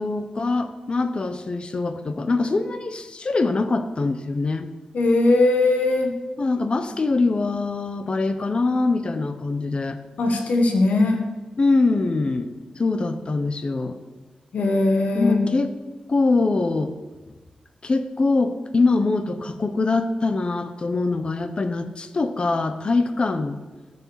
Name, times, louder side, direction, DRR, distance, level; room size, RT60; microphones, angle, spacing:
voice 1, 0.0-4.7 6.4-10.0 11.6-14.0 15.1-15.7 16.1-17.0 17.8-23.6, left 3 dB, 40° left, 9 dB, 0.7 m, -23 dB
voice 2, 4.9-6.1 10.2-11.2 14.5-15.4, left 2 dB, 75° left, 3 dB, 1.3 m, -19 dB
13.5 x 5.7 x 4.7 m, 1.2 s
wide cardioid pair, 95°, 2 cm